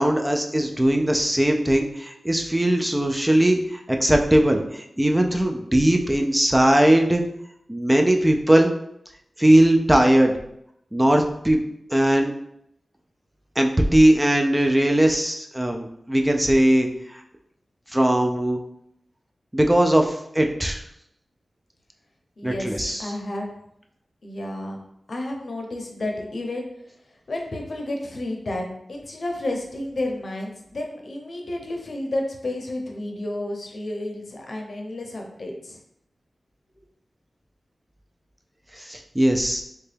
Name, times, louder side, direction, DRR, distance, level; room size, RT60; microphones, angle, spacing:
voice 1, 0.0-7.2 7.7-8.7 9.4-10.3 10.9-11.6 11.9-12.3 13.6-17.2 17.9-18.6 19.5-20.8 22.4-23.1 38.7-39.6, right 1 dB, 15° right, 3 dB, 0.4 m, -19 dB
voice 2, 22.4-23.5 24.2-24.8 25.1-26.7 27.3-35.8, left 1 dB, 65° left, 1 dB, 0.6 m, -31 dB
3.7 x 2.2 x 3.3 m, 0.76 s
wide cardioid pair, 65°, 0 cm